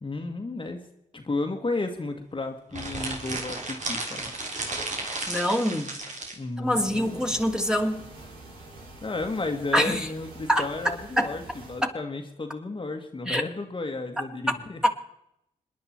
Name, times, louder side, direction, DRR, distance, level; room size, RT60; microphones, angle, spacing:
voice 1, 0.0-0.8 1.1-4.3 6.3-7.4 9.0-11.4 11.7-14.8, left 3 dB, 35° left, 3 dB, 1.8 m, -33 dB
sound 1, 2.7-6.4, right 2 dB, 55° right, 3.5 m, -33 dB
voice 2, 5.3-5.9 6.6-8.0 9.7-10.1 10.5-10.7 11.2-11.3 11.8-11.9 13.3-13.4, equal, 5° right, 3 dB, 2.6 m, -24 dB
sound 2, 6.6-11.9, right 2 dB, 85° right, 3.7 m, -46 dB
27.0 x 10.5 x 4.4 m, 0.80 s
supercardioid pair, 45°, 15 cm